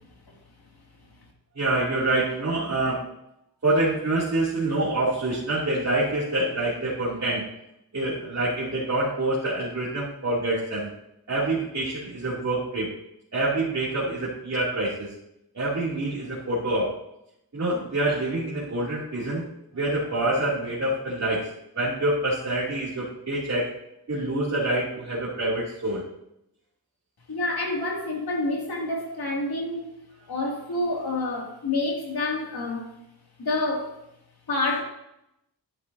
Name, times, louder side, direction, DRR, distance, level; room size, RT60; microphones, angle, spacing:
voice 1, 1.5-3.0 3.6-7.5 7.9-10.9 11.3-12.9 13.3-15.1 15.5-16.9 17.5-19.4 19.7-21.5 21.7-23.7 24.1-26.0, right 2 dB, 40° right, -9 dB, 2.8 m, -26 dB
voice 2, 27.3-29.9 30.3-32.9 33.4-33.9 34.5-34.8, left 2 dB, 65° left, -1 dB, 2.6 m, -28 dB
11.0 x 10.5 x 2.7 m, 0.82 s
wide cardioid pair, 130°, 39 cm